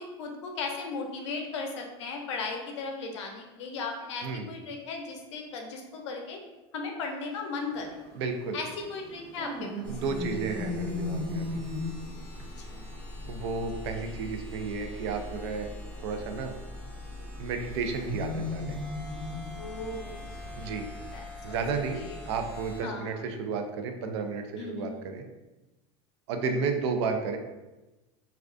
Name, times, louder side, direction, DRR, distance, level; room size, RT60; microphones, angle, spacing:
voice 1, 0.0-6.4 6.7-7.9 8.5-9.9 12.7-12.8 19.5-20.2 21.1-21.6 21.9-22.2 22.8-23.2 24.6-25.1 26.4-26.6, left 4 dB, 90° left, 2 dB, 0.5 m, -36 dB
sound 1, 7.7-21.2, left 2 dB, 30° right, 0.7 m, -39 dB
voice 2, 8.1-8.6 9.9-11.6 13.3-15.7 16.0-16.5 17.4-18.8 20.6-20.9 21.4-25.2 26.3-27.4, right 4 dB, 75° right, 5 dB, 0.4 m, -32 dB
sound 2, 9.8-22.8, left 1 dB, 10° left, 0.5 m, -42 dB
2.3 x 2.2 x 2.4 m, 1.1 s
supercardioid pair, 135°, 15 cm